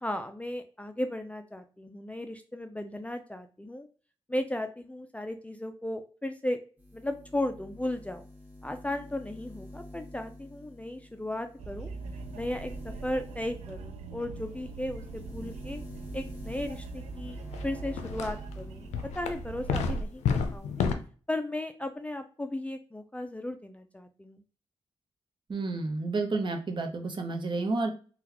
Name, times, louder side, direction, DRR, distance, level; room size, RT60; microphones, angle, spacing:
voice 1, 0.0-3.9 4.3-6.6 6.9-8.3 8.6-11.9 12.3-15.8 16.1-18.9 19.1-20.9 21.3-24.4, left 1 dB, 10° left, 7 dB, 0.4 m, -35 dB
sound 1, 6.8-19.7 20.1-21.1, left 1 dB, 15° right, 1.3 m, -48 dB
sound 2, 11.6-20.0, right 5 dB, 85° right, 0.4 m, -41 dB
sound 3, 17.5-17.7 18.0-18.5 18.9-20.9, left 6 dB, 85° left, 0.4 m, -29 dB
voice 2, 25.5-27.9, right 3 dB, 45° right, 4 dB, 0.8 m, -30 dB
3.6 x 2.3 x 2.9 m, 0.38 s
supercardioid pair, 50°, 11 cm